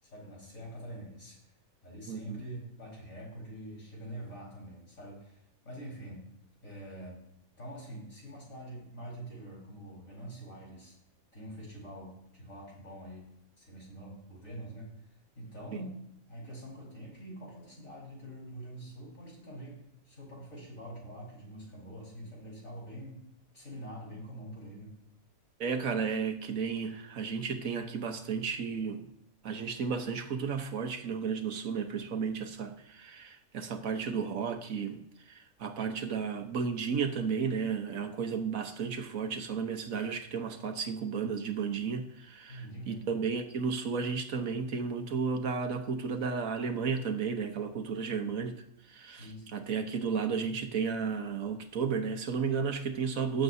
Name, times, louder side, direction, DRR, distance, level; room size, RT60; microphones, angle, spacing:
voice 1, 0.0-1.5 1.8-6.3 6.6-7.2 7.6-11.0 11.3-13.3 13.6-16.0 16.3-23.2 23.5-25.0 42.5-43.1 49.1-49.6 50.6-50.7, right 1 dB, 65° left, -4 dB, 5.0 m, -45 dB
voice 2, 2.1-2.4 25.6-29.1 29.4-48.6 48.9-49.3 49.5-53.4, right 6 dB, 70° right, 6 dB, 1.4 m, -33 dB
18.5 x 7.7 x 2.7 m, 0.77 s
omnidirectional pair, 1.5 m